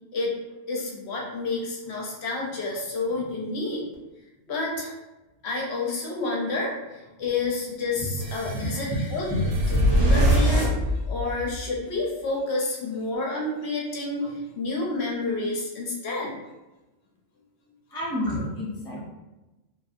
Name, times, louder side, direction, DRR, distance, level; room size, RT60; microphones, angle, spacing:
voice 1, 0.7-3.8 4.5-4.9 5.4-6.7 7.2-9.3 9.9-10.7 11.1-16.3, left 3 dB, 65° left, -2 dB, 0.8 m, -29 dB
sound 1, 8.2-11.7, equal, 80° right, 1.2 m, -23 dB
voice 2, 9.3-9.9 17.9-19.0, equal, 5° left, -7 dB, 0.3 m, -29 dB
2.6 x 2.6 x 2.4 m, 1.1 s
omnidirectional pair, 1.3 m